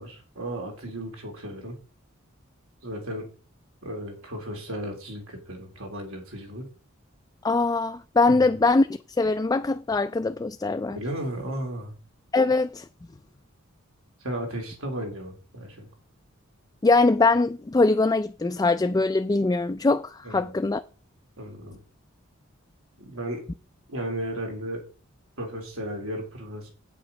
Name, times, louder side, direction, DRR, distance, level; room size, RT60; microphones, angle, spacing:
voice 1, 0.0-1.8 2.8-3.3 3.8-6.7 8.3-8.5 10.9-12.0 14.2-15.9 20.2-20.5 21.4-21.8 23.1-23.4 23.9-24.8 25.4-26.7, right 1 dB, 90° right, 3.5 m, -34 dB
voice 2, 7.4-8.9 9.2-11.0 12.3-12.9 16.8-20.8, left 3 dB, 20° left, 0.3 m, -22 dB
8.5 x 6.7 x 5.3 m
head